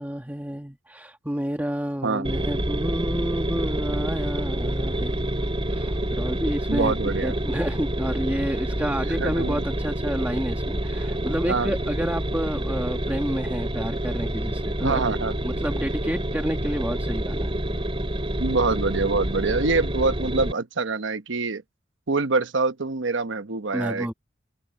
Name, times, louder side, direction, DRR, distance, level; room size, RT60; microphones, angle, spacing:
voice 1, 0.0-6.9 7.2-15.0 15.4-17.6 23.7-24.1, equal, 10° right, 1.4 m, -30 dB
sound 1, 2.2-20.5, right 1 dB, 30° right, 3.2 m, -28 dB
voice 2, 6.7-7.3 9.2-9.6 11.5-11.7 14.8-15.4 18.4-21.6 22.1-24.1, right 3 dB, 90° right, 1.0 m, -25 dB
open air
head